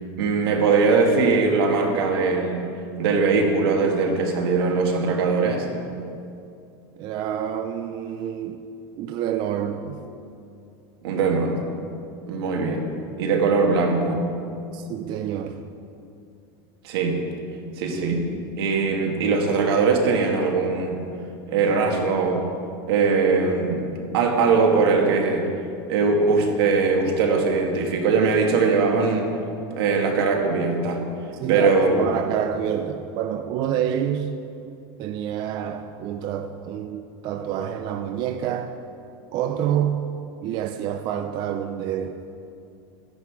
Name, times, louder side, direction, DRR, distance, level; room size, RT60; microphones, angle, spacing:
voice 1, 0.2-2.7 3.0-5.7 11.0-11.6 12.3-12.9 13.2-14.3 16.8-17.2 17.8-18.3 18.6-21.0 21.5-22.5 22.9-25.5 25.9-29.3 29.7-31.1 31.5-32.0, right 4 dB, 80° right, 2.2 m, -21 dB
voice 2, 7.0-8.6 9.0-10.0 14.7-15.7 31.4-34.4 35.0-38.7 39.3-40.2 40.4-42.2, right 9 dB, 35° right, 0.5 m, -27 dB
15.0 x 10.5 x 4.8 m
supercardioid pair, 165°, 13 cm